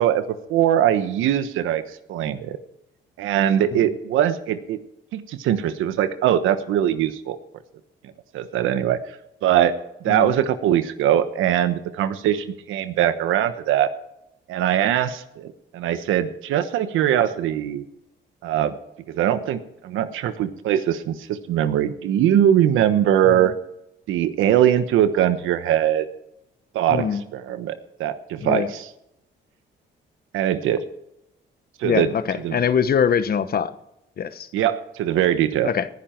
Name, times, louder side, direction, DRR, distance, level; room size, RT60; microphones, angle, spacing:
voice 1, 0.0-1.8 2.1-2.6 3.2-4.8 5.1-7.4 8.3-9.0 9.4-13.9 14.5-17.8 18.4-18.7 19.1-23.5 24.1-26.1 26.7-27.1 27.3-28.6 30.3-30.8 31.8-32.1 32.4-32.6 34.5-35.7, right 10 dB, 90° right, 11 dB, 1.2 m, -21 dB
voice 2, 26.9-27.2 28.4-28.7 31.8-33.7 34.2-34.5 35.6-35.9, left 7 dB, 50° left, 13 dB, 1.1 m, -23 dB
19.5 x 10.5 x 4.5 m, 0.85 s
cardioid pair, 90°, 20 cm